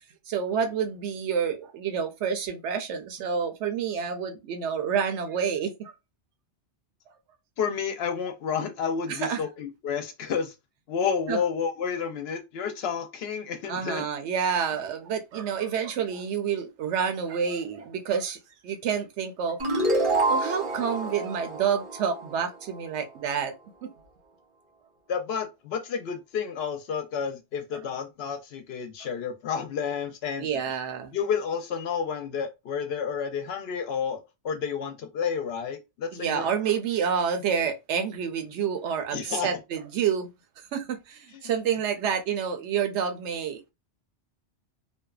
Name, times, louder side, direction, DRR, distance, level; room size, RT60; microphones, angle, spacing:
voice 1, 0.3-5.9 9.1-9.4 11.3-11.4 13.6-18.4 18.6-19.6 20.3-23.5 23.8-23.9 30.4-31.2 36.1-40.3 40.6-43.7, right 7 dB, 80° right, 0.9 m, -28 dB
voice 2, 7.6-10.5 10.9-14.0 25.1-30.5 31.1-36.5 39.1-39.5, left 6 dB, 70° left, 0.8 m, -30 dB
sound 1, 19.6-22.8, right 2 dB, 30° right, 0.7 m, -27 dB
2.6 x 2.2 x 2.3 m
omnidirectional pair, 1.2 m